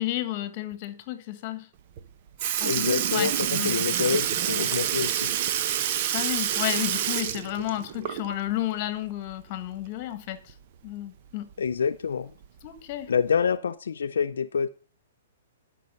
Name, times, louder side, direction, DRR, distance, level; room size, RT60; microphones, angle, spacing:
voice 1, 0.0-1.7 2.6-3.3 3.6-3.7 6.1-10.5 10.8-11.5 12.6-13.1, left 14 dB, 40° left, 1.4 m, -32 dB
Sink (filling or washing) / Liquid, 2.0-2.1 2.4-8.5 8.9-9.0 10.5-10.6 11.5-11.6 12.4-12.7 13.5-13.6, right 10 dB, 45° right, 0.8 m, -27 dB
voice 2, 2.6-5.3 11.6-12.3 13.1-14.7, left 6 dB, 85° left, 0.4 m, -27 dB
12.0 x 5.6 x 5.3 m
hypercardioid pair, 140°, 0 cm